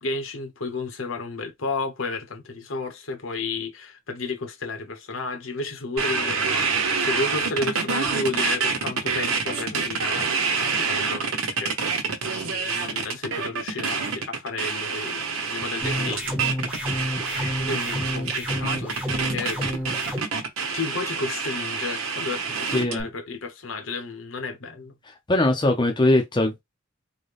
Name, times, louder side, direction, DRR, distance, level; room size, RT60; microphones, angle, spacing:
voice 1, 0.0-10.3 10.6-11.8 12.4-16.3 16.6-17.0 17.3-19.9 20.6-24.9, left 3 dB, 70° left, 1.1 m, -32 dB
sound 1, 6.0-23.0, right 5 dB, 90° right, 1.1 m, -27 dB
sound 2, 15.8-20.2, equal, 5° right, 0.9 m, -30 dB
voice 2, 22.7-23.1 25.3-26.6, left 1 dB, 20° left, 0.6 m, -21 dB
3.9 x 2.2 x 3.4 m
head